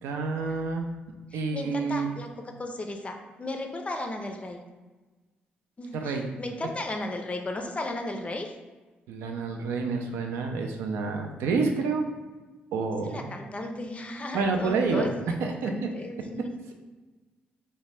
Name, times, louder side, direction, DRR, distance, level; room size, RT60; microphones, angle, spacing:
voice 1, 0.0-0.9 1.3-2.1 6.0-6.3 9.1-12.1 12.7-13.3 14.3-15.1 15.4-15.7, right 4 dB, 85° right, 4 dB, 0.3 m, -28 dB
voice 2, 1.3-4.6 5.8-8.6 13.0-16.5, left 2 dB, 30° left, 4 dB, 0.4 m, -35 dB
2.7 x 2.1 x 3.1 m, 1.3 s
supercardioid pair, 60°, 4 cm